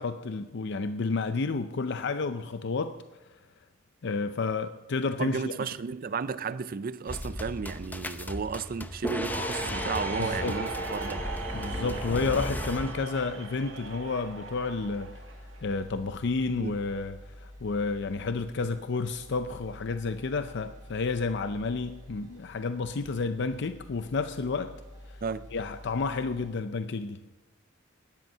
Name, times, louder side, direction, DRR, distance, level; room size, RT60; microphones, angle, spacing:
voice 1, 0.0-2.9 4.0-5.5 10.2-10.6 11.5-15.2 15.6-24.7 25.1-25.2 25.5-27.4, left 4 dB, 60° left, 0.5 m, -31 dB
voice 2, 5.2-11.3 16.5-16.8 25.2-25.5, right 5 dB, 45° right, 0.5 m, -33 dB
sound 1, 7.1-13.0, left 1 dB, 10° left, 0.6 m, -35 dB
sound 2, 8.6-26.5, left 1 dB, 20° right, 5.4 m, -49 dB
sound 3, 9.3-15.8, right 4 dB, 70° right, 1.8 m, -39 dB
16.5 x 10.5 x 5.5 m
head